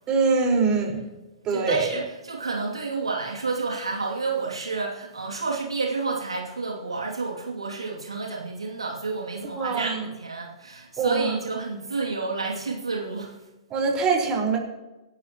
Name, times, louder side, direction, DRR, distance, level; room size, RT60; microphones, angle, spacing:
voice 1, 0.1-1.0 1.4-1.9 9.6-10.1 11.0-11.4 13.7-14.6, right 4 dB, 30° right, 0 dB, 4.7 m, -23 dB
voice 2, 1.5-13.3, right 4 dB, 90° right, -1 dB, 2.7 m, -30 dB
27.0 x 12.0 x 3.1 m, 1.0 s
hypercardioid pair, 110°, 3 cm